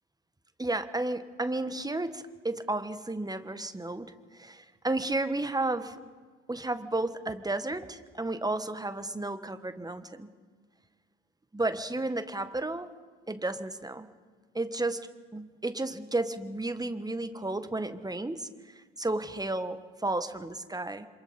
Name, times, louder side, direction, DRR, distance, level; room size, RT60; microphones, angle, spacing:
voice 1, 0.6-6.0 6.5-10.3 11.5-12.9 13.3-14.1 14.5-18.5 19.0-21.1, right 2 dB, 10° right, 11 dB, 1.5 m, -32 dB
27.0 x 26.5 x 4.4 m, 1.4 s
hypercardioid pair, 55°, 36 cm